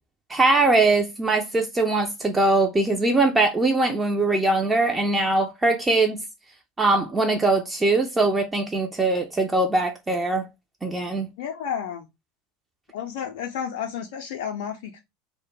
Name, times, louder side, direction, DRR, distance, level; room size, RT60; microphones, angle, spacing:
voice 1, 0.3-6.2 6.8-10.5 10.8-11.3, right 2 dB, 15° right, 0.4 m, -21 dB
voice 2, 11.4-12.1 12.9-15.0, left 8 dB, 60° left, 0.4 m, -31 dB
2.1 x 2.1 x 3.1 m
figure-of-eight pair, 80°, 0 cm